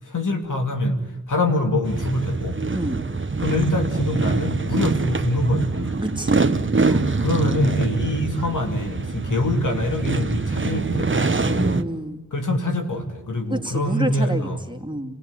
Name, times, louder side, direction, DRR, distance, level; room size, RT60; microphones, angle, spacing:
voice 1, 0.1-1.0 1.3-2.6 3.4-6.0 6.9-11.7 12.3-14.6, left 1 dB, 80° left, 4 dB, 3.0 m, -24 dB
sound 1, 1.8-11.8, right 3 dB, 40° right, 1.3 m, -24 dB
voice 2, 2.7-3.1 6.0-6.5 11.5-12.3 13.5-15.2, right 1 dB, 15° right, 5 dB, 2.7 m, -28 dB
30.0 x 17.0 x 9.8 m, 1.1 s
cardioid pair, 40°, 31 cm